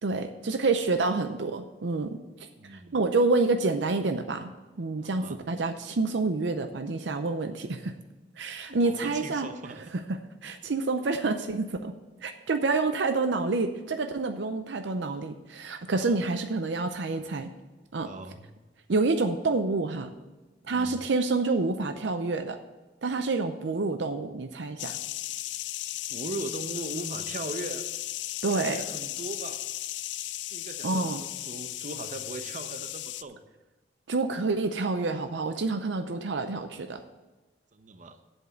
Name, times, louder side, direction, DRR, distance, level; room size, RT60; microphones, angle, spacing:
voice 1, 0.0-4.5 4.8-7.9 8.4-9.5 10.1-12.0 12.2-17.5 17.9-18.1 18.9-20.1 20.6-22.6 23.0-25.0 28.4-28.8 30.8-31.2 34.1-37.0, right 3 dB, 70° right, 8 dB, 0.6 m, -28 dB
voice 2, 2.6-3.0 5.1-5.4 8.7-9.8 15.9-16.2 18.1-18.5 20.6-20.9 26.1-27.8 28.5-29.7 30.5-33.4 37.7-38.2, right 2 dB, 45° right, 9 dB, 0.8 m, -39 dB
sound 1, 24.8-33.2, left 14 dB, 70° left, 0.4 m, -36 dB
8.2 x 7.3 x 7.5 m, 1.2 s
head